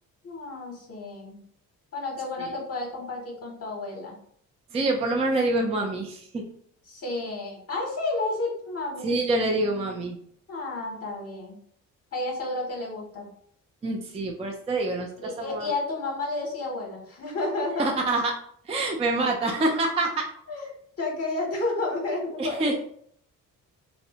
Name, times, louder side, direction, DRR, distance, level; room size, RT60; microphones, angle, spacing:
voice 1, 0.2-1.4 1.9-4.2 6.9-9.1 10.5-11.6 12.1-13.3 15.2-17.8 20.5-20.7 21.0-22.6, left 2 dB, 45° left, 0 dB, 0.8 m, -31 dB
voice 2, 4.7-6.4 9.0-10.2 13.8-15.7 17.8-18.3 18.6-20.2 22.4-22.8, right 2 dB, 20° right, 1 dB, 0.4 m, -26 dB
2.6 x 2.1 x 2.7 m, 0.64 s
cardioid pair, 80°, 34 cm